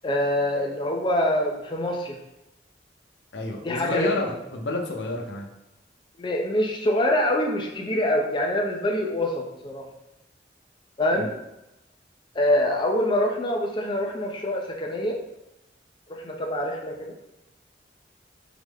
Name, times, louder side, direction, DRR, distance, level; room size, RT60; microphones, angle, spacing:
voice 1, 0.0-2.2 3.6-4.2 6.2-9.8 11.0-11.3 12.3-15.2 16.1-17.1, left 1 dB, 25° left, 1 dB, 0.5 m, -25 dB
voice 2, 3.3-5.5 11.2-11.3, left 2 dB, 85° left, 2 dB, 0.6 m, -29 dB
4.8 x 2.1 x 3.4 m, 0.90 s
head